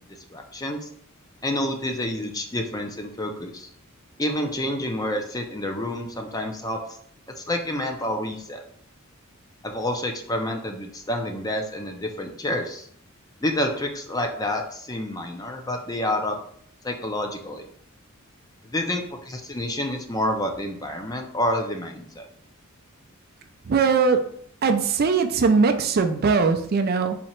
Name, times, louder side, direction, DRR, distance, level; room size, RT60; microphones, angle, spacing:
voice 1, 0.3-0.9 1.4-3.7 4.2-6.8 7.4-8.6 9.6-12.9 13.4-16.4 16.8-17.7 18.6-22.3, left 1 dB, 15° left, 3 dB, 0.5 m, -28 dB
voice 2, 23.6-24.2 24.6-27.2, right 5 dB, 45° right, 7 dB, 0.4 m, -20 dB
4.2 x 2.9 x 4.4 m, 0.62 s
head